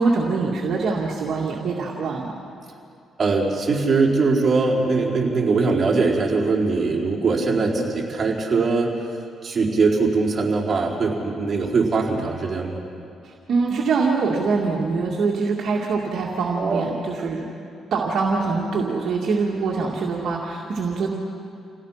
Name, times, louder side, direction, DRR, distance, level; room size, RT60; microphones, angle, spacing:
voice 1, 0.0-2.3 13.2-17.5 17.9-21.1, right 4 dB, 65° right, -2 dB, 2.3 m, -24 dB
voice 2, 3.2-8.9 9.4-12.8 16.6-17.3, right 4 dB, 40° right, -3 dB, 4.5 m, -21 dB
28.5 x 17.0 x 5.9 m, 2.6 s
cardioid pair, 90°, 0 cm